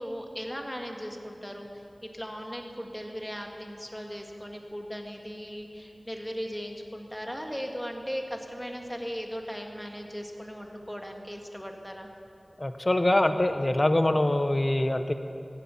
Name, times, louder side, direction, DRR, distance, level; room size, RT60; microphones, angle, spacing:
voice 1, 0.0-12.1, equal, 5° left, 2 dB, 1.7 m, -38 dB
voice 2, 12.6-15.1, left 1 dB, 35° left, 8 dB, 0.9 m, -24 dB
15.0 x 9.7 x 7.1 m, 2.6 s
wide cardioid pair, 50°, 0 cm